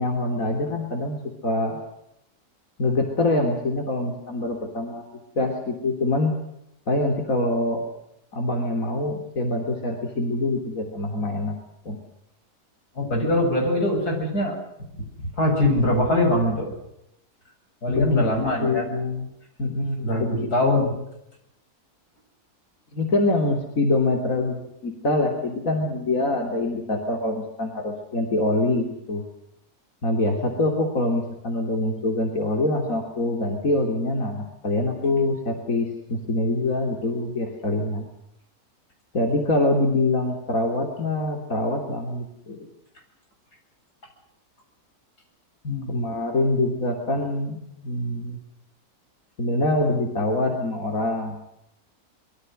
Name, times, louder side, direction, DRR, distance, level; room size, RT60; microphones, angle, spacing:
voice 1, 0.0-1.8 2.8-5.1 5.4-6.3 6.9-7.8 8.3-11.5 11.9-12.0 17.9-18.2 18.6-19.3 19.6-20.5 22.9-29.2 30.0-38.1 39.1-42.7 45.9-48.4 49.4-51.4, left 2 dB, 60° left, 2 dB, 3.7 m, -25 dB
voice 2, 12.9-14.6 15.4-16.7 17.8-18.9 20.0-20.9 45.6-46.0, left 1 dB, 90° left, 2 dB, 8.3 m, -22 dB
25.5 x 23.0 x 6.5 m, 0.81 s
omnidirectional pair, 1.6 m